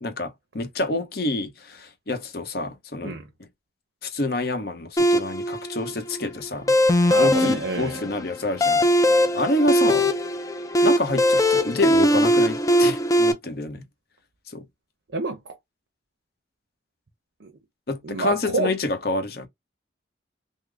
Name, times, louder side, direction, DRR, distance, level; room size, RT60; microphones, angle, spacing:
voice 1, 0.0-3.2 4.0-6.7 7.2-10.1 10.8-13.9 14.5-14.6 17.9-19.5, left 2 dB, 55° left, 0.8 m, -28 dB
sound 1, 5.0-13.3, equal, 15° left, 0.4 m, -20 dB
voice 2, 7.1-8.0 15.1-15.6 17.4-17.5 18.0-18.7, right 3 dB, 75° right, 0.7 m, -28 dB
3.7 x 2.1 x 3.3 m
head